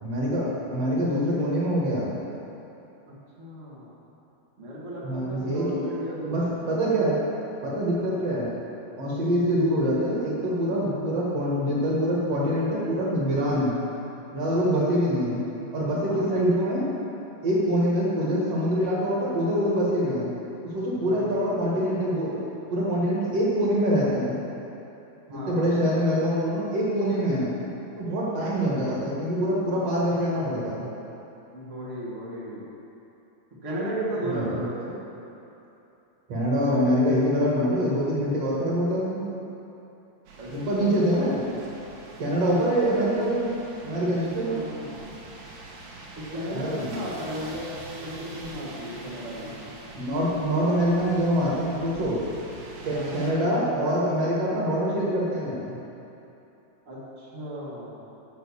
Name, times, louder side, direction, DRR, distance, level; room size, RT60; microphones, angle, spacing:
voice 1, 0.0-2.1 5.0-5.8 6.2-7.2 7.6-8.5 9.0-13.8 14.3-15.4 15.7-16.9 17.4-20.3 20.6-22.4 22.7-24.4 25.3-27.5 28.0-30.8 34.3-34.6 36.3-39.2 40.5-41.4 42.2-43.5 43.8-44.5 46.5-46.9 49.9-52.2 52.8-55.8, equal, 50° right, -6 dB, 2.0 m, -25 dB
voice 2, 3.0-3.9 4.6-6.5 7.9-8.2 14.4-14.7 16.0-16.4 20.9-21.6 25.3-25.9 31.5-32.6 33.6-35.0 40.4-40.9 42.5-42.7 43.9-45.3 46.1-49.6 52.8-53.3 56.8-58.0, right 1 dB, 85° right, -7 dB, 0.6 m, -35 dB
sound 1, 40.3-53.3, right 2 dB, 70° right, 2.8 m, -44 dB
8.8 x 5.7 x 7.2 m, 2.9 s
omnidirectional pair, 4.7 m